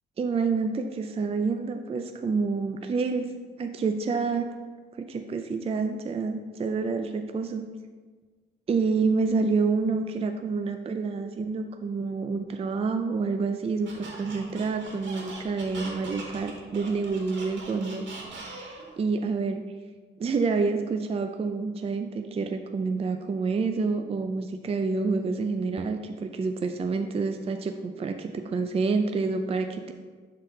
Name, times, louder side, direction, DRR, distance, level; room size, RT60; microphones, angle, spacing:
voice 1, 0.2-3.3 3.6-4.5 5.0-7.7 8.7-18.1 18.3-19.6 20.2-29.9, right 4 dB, 30° right, 6 dB, 0.4 m, -28 dB
Squeak, 13.8-18.9, right 3 dB, 65° right, 2.2 m, -41 dB
11.5 x 4.1 x 3.3 m, 1.4 s
cardioid pair, 90°, 20 cm